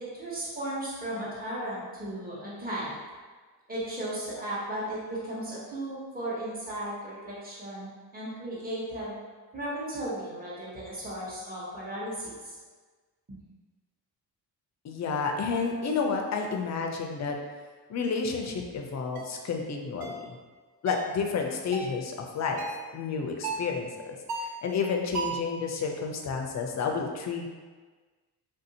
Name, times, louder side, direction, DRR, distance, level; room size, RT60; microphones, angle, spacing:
voice 1, 0.0-3.0 3.7-9.2 9.5-12.5 13.3-13.4, right 1 dB, 20° right, -7 dB, 1.0 m, -35 dB
voice 2, 14.8-17.4 17.9-20.3 20.8-22.6 22.9-27.5, left 5 dB, 45° left, 2 dB, 0.5 m, -30 dB
sound 1, 19.1-19.3 20.0-20.3 20.9-21.1 21.7-22.0 22.6-22.9 23.4-23.7 24.3-24.6 25.1-25.5, right 4 dB, 70° right, 0.5 m, -35 dB
3.7 x 2.6 x 2.7 m, 1.4 s
wide cardioid pair, 125°, 41 cm